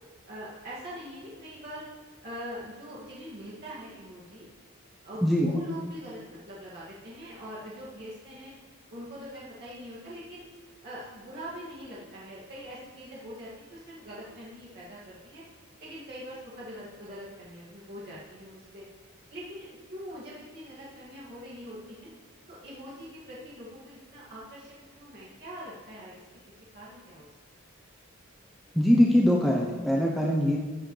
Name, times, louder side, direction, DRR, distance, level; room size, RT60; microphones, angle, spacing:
voice 1, 0.3-1.8 2.2-4.4 5.0-8.5 8.9-10.4 10.8-15.4 15.8-18.8 19.3-22.1 22.5-26.2 26.7-27.3, equal, 50° right, -8 dB, 2.2 m, -43 dB
voice 2, 28.7-30.6, equal, ahead, -3 dB, 0.7 m, -22 dB
13.5 x 8.2 x 3.3 m, 1.4 s
head